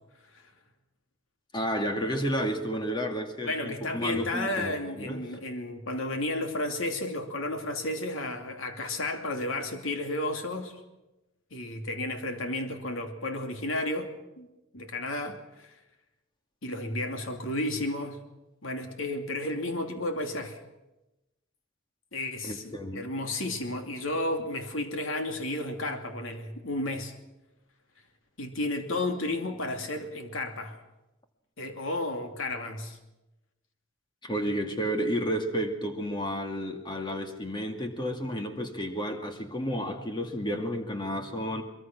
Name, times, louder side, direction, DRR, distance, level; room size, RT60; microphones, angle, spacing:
voice 1, 1.5-5.2 22.4-23.1 34.2-41.6, equal, 25° left, 5 dB, 2.3 m, -31 dB
voice 2, 3.4-10.8 11.5-14.1 14.4-14.5 14.7-15.7 16.6-18.2 18.6-20.6 22.1-27.1 28.4-30.8 31.6-33.0, left 1 dB, 75° left, 5 dB, 2.7 m, -32 dB
23.5 x 22.5 x 6.1 m, 0.99 s
head